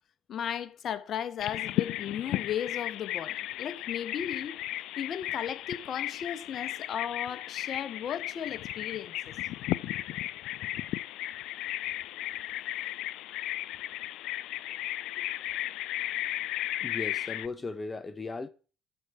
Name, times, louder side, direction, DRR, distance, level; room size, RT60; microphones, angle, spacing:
voice 1, 0.3-4.6 5.0-9.1, left 9 dB, 55° left, 1.0 m, -35 dB
Bird vocalization bird call bird song, 1.4-17.5, left 14 dB, 70° left, 0.4 m, -35 dB
voice 2, 16.8-18.5, left 3 dB, 25° left, 0.8 m, -37 dB
13.0 x 4.7 x 6.8 m
hypercardioid pair, 65°, 0 cm